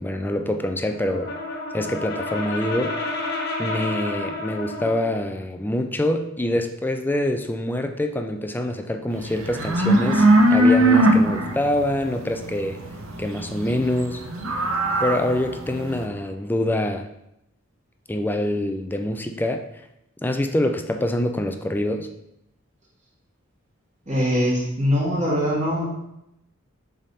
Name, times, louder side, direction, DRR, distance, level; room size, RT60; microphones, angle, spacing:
voice 1, 0.0-1.3 1.7-2.9 3.6-12.8 13.2-14.2 15.0-17.1 18.1-19.6 20.2-22.1, left 1 dB, 10° left, 5 dB, 0.4 m, -25 dB
Brass instrument, 0.9-5.1, left 2 dB, 55° left, 1.0 m, -30 dB
sound 1, 9.2-16.0, right 1 dB, 75° right, 0.8 m, -20 dB
voice 2, 24.1-25.9, equal, 35° right, -7 dB, 2.5 m, -22 dB
7.1 x 3.6 x 4.1 m, 0.82 s
head